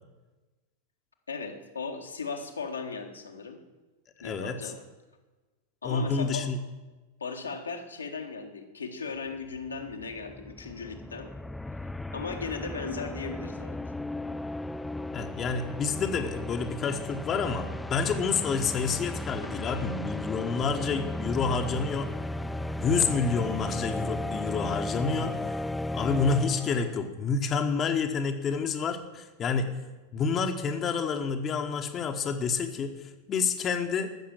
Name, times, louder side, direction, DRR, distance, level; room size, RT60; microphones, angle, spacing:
voice 1, 1.3-3.6 4.2-4.8 5.8-6.5 7.2-11.3 12.1-13.8, left 4 dB, 75° left, 2 dB, 1.5 m, -37 dB
voice 2, 4.2-4.7 5.8-6.6 15.1-22.1 22.8-25.6 25.9-29.7 30.1-34.1, left 5 dB, 25° left, 5 dB, 1.1 m, -29 dB
sound 1, 9.3-9.4 9.6-27.0, left 1 dB, 5° left, 0.3 m, -35 dB
14.5 x 6.9 x 7.5 m, 1.2 s
figure-of-eight pair, 90°, 0 cm